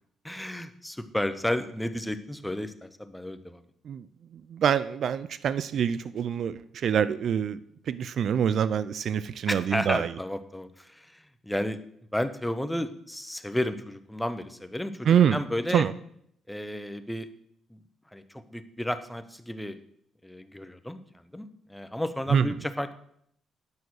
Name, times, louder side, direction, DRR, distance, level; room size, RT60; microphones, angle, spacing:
voice 1, 0.2-3.6 9.5-11.8 12.1-15.8 16.5-17.3 17.7-17.8 18.1-19.8 20.2-21.0 21.3-22.9, left 1 dB, 5° left, 11 dB, 0.8 m, -32 dB
voice 2, 4.3-7.6 7.9-10.1 15.1-15.4 15.7-15.9 22.3-22.5, right 8 dB, 60° right, 16 dB, 0.4 m, -25 dB
9.5 x 6.0 x 6.3 m, 0.68 s
cardioid pair, 90°, 0 cm